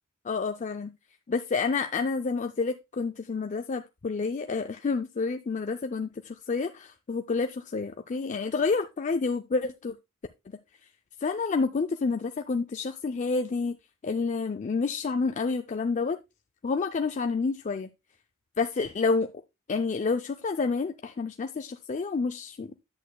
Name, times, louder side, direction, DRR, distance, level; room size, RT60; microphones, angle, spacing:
voice 1, 0.2-0.9 1.3-10.0 11.2-13.8 14.0-16.2 16.6-17.9 18.6-19.3 19.7-22.7, left 4 dB, 35° left, 0.4 m, -29 dB
10.5 x 8.2 x 2.2 m
head